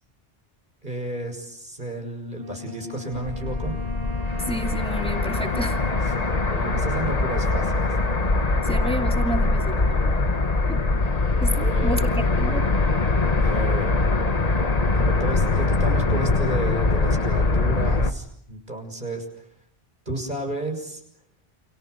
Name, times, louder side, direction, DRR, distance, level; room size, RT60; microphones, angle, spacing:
voice 1, 0.8-3.7 6.4-7.9 11.6-12.0 13.4-14.0 14.9-19.4 20.1-21.0, right 2 dB, 50° right, 3 dB, 6.7 m, -32 dB
Wind instrument woodwind instrument, 2.4-7.8, left 3 dB, 70° right, 1.6 m, -38 dB
sound 1, 3.1-18.1, left 3 dB, 40° left, 1.4 m, -22 dB
voice 2, 4.3-5.8 8.6-10.2 10.7-10.8 11.4-12.1 12.4-12.7, equal, 5° left, 4 dB, 2.5 m, -30 dB
29.5 x 28.0 x 6.7 m, 0.72 s
omnidirectional pair, 1.0 m